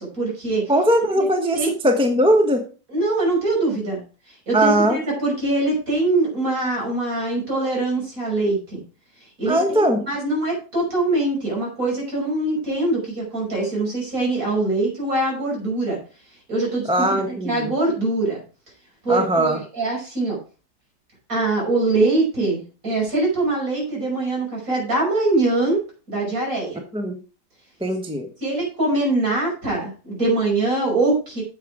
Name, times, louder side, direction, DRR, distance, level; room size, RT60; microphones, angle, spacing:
voice 1, 0.0-0.6 1.1-1.3 1.5-1.7 2.9-4.0 4.5-8.8 9.4-16.0 16.5-18.4 19.0-20.4 21.3-25.8 26.1-26.8 28.4-31.4, right 2 dB, 50° right, -3 dB, 6.3 m, -23 dB
voice 2, 0.7-2.6 4.5-5.0 9.5-10.0 16.9-17.7 19.1-19.6 26.9-27.1 27.8-28.3, right 1 dB, 5° right, 5 dB, 1.0 m, -19 dB
9.1 x 7.5 x 4.8 m, 0.35 s
omnidirectional pair, 1.8 m